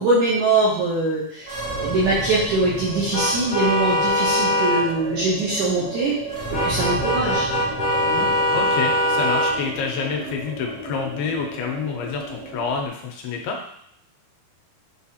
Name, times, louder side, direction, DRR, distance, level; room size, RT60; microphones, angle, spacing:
voice 1, 0.0-1.5 1.8-6.2 6.5-7.5 8.0-8.3, right 2 dB, 75° right, -7 dB, 1.8 m, -22 dB
sound 1, 1.4-12.9, right 2 dB, 55° right, 0.8 m, -33 dB
sound 2, 3.1-4.8 6.5-9.5, left 1 dB, 70° left, 1.4 m, -21 dB
voice 2, 8.5-13.6, left 5 dB, 85° left, 1 dB, 2.6 m, -28 dB
6.4 x 2.4 x 2.8 m, 0.69 s
omnidirectional pair, 4.3 m